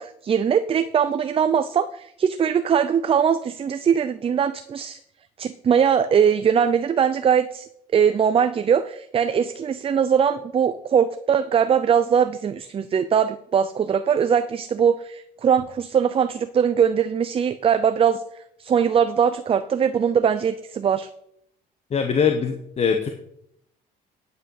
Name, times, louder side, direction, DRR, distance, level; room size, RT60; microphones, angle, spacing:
voice 1, 0.0-5.0 5.4-18.2 18.6-21.1, right 7 dB, 35° right, 11 dB, 0.6 m, -21 dB
voice 2, 21.9-23.1, left 6 dB, 40° left, 6 dB, 1.2 m, -22 dB
10.0 x 8.0 x 6.5 m, 0.73 s
cardioid pair, 110°, 17 cm